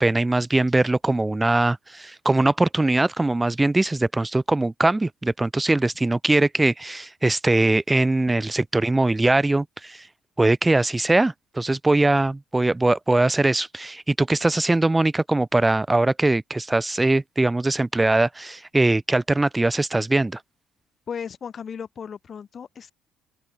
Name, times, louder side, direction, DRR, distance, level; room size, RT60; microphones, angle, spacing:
voice 1, 0.0-10.0 10.4-20.4, right 2 dB, 15° right, 1.7 m, -21 dB
voice 2, 21.1-22.9, left 7 dB, 45° left, 6.0 m, -35 dB
hypercardioid pair, 55°, 0 cm